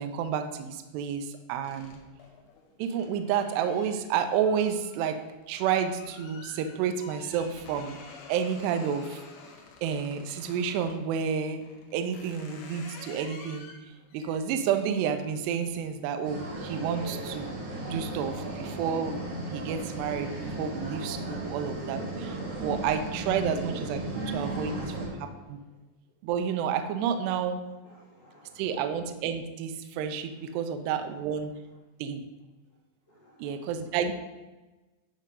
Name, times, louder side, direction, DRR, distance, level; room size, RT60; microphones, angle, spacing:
voice 1, 0.0-2.0 2.8-5.2 5.5-8.0 8.3-9.2 9.8-11.7 11.9-13.7 14.1-17.6 17.8-19.2 19.5-25.6 26.2-27.6 28.6-31.5 32.0-32.2 33.4-34.1, right 7 dB, 85° right, 7 dB, 2.5 m, -30 dB
sound 1, 1.6-11.0 11.6-18.1 18.5-18.8 19.1-21.0, left 4 dB, 90° left, 3.8 m, -51 dB
sound 2, 16.2-25.1, right 2 dB, 50° right, 3.0 m, -35 dB
voice 2, 24.5-25.4 27.8-28.7 33.1-33.5, left 1 dB, 70° left, -7 dB, 1.6 m, -55 dB
11.0 x 5.5 x 3.7 m, 1.1 s
omnidirectional pair, 5.4 m